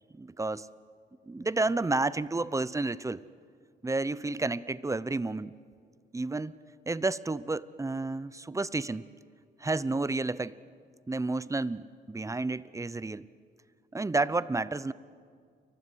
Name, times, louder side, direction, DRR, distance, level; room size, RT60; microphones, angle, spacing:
voice 1, 0.1-0.7 1.3-3.2 3.8-5.5 6.1-6.5 6.9-9.1 9.6-10.5 11.1-13.3 13.9-14.9, right 3 dB, 15° right, 17 dB, 0.8 m, -31 dB
30.0 x 24.0 x 8.1 m, 2.1 s
cardioid pair, 90°, 20 cm